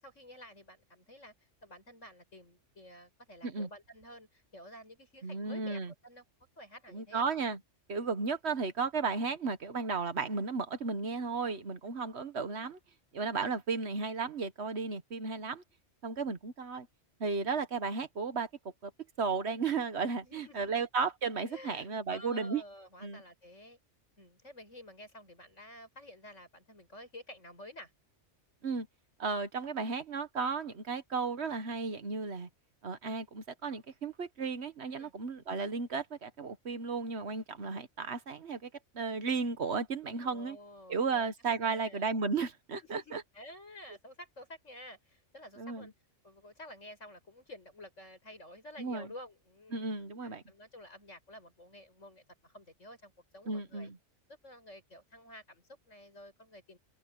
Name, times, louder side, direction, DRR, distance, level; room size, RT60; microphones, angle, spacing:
voice 1, 0.0-1.3 1.6-6.2 6.6-7.3 20.2-20.9 21.5-23.8 24.2-27.9 35.0-35.1 40.2-41.3 41.6-42.1 42.8-45.9 46.2-50.0 50.2-53.9 54.3-56.8, left 1 dB, 85° left, 8.1 m, -51 dB
voice 2, 5.2-5.9 6.9-7.6 7.9-12.8 13.1-15.6 16.0-16.9 17.2-18.5 18.8-18.9 19.2-22.6 23.0-23.2 28.6-28.9 29.2-32.5 32.8-38.7 38.9-40.6 40.9-43.2 45.6-45.9 48.8-49.1 49.7-50.4 53.5-54.0, right 4 dB, 60° right, 1.5 m, -34 dB
open air
omnidirectional pair, 1.2 m